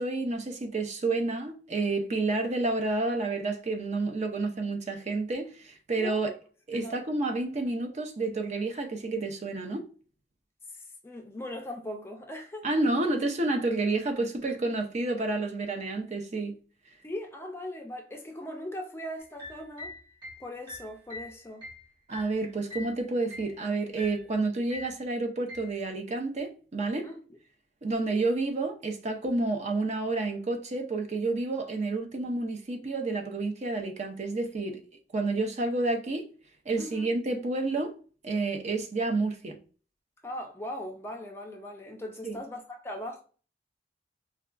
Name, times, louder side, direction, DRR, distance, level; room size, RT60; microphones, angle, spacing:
voice 1, 0.0-6.3 6.7-9.8 12.6-16.6 22.1-27.1 27.8-34.8 35.1-36.3 36.7-37.9 38.2-39.6 42.2-42.4, right 3 dB, 40° right, 0.5 m, -30 dB
voice 2, 6.0-6.3 6.7-7.0 11.0-12.7 17.0-19.9 20.4-21.7 27.0-27.2 36.8-37.1 40.2-43.2, left 1 dB, 15° left, 0.4 m, -39 dB
sound 1, 19.2-23.0 23.3-23.6 24.0-24.3 24.7-25.0 25.5-25.8, left 2 dB, 25° right, 1.1 m, -44 dB
4.6 x 2.3 x 2.4 m
head